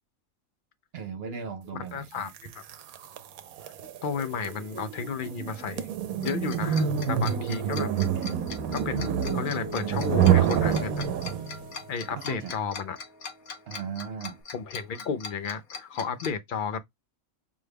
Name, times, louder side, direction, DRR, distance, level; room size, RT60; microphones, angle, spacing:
voice 1, 0.9-2.3 8.1-8.5 12.2-12.5 13.7-14.4, right 7 dB, 65° right, 0.6 m, -37 dB
voice 2, 1.7-2.6 3.6-3.7 4.0-5.9 6.2-7.9 8.7-11.0 11.9-13.0 14.5-16.8, left 6 dB, 65° left, 0.5 m, -33 dB
sound 1, 2.3-11.7, right 9 dB, 85° right, 1.1 m, -27 dB
Tick-tock, 6.2-16.3, left 5 dB, 85° left, 1.4 m, -40 dB
Guitar, 7.8-14.4, left 1 dB, 15° right, 0.4 m, -44 dB
5.4 x 2.2 x 3.3 m
omnidirectional pair, 1.5 m